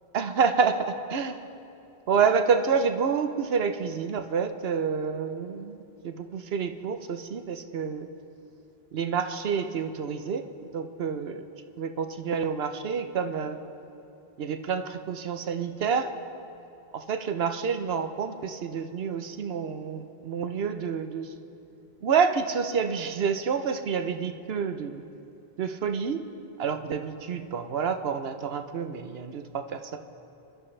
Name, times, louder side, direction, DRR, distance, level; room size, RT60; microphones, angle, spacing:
voice 1, 0.1-1.5 2.1-5.8 6.0-8.1 8.9-10.4 10.7-11.4 11.8-13.6 14.4-16.1 16.9-21.2 22.0-25.0 25.6-26.2 26.6-30.0, right 6 dB, 70° right, 7 dB, 1.0 m, -28 dB
26.5 x 12.5 x 3.3 m, 2.9 s
omnidirectional pair, 1.1 m